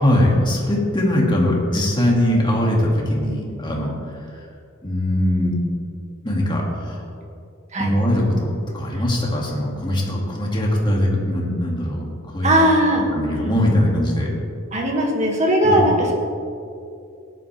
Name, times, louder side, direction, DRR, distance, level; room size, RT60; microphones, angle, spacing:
voice 1, 0.0-3.9 4.8-5.6 6.2-7.1 7.8-12.5 13.1-14.3 15.6-15.8, left 1 dB, 25° left, -3 dB, 2.4 m, -21 dB
voice 2, 12.4-13.0 14.7-16.1, right 1 dB, 35° right, 0 dB, 2.2 m, -18 dB
16.5 x 11.0 x 3.5 m, 2.5 s
head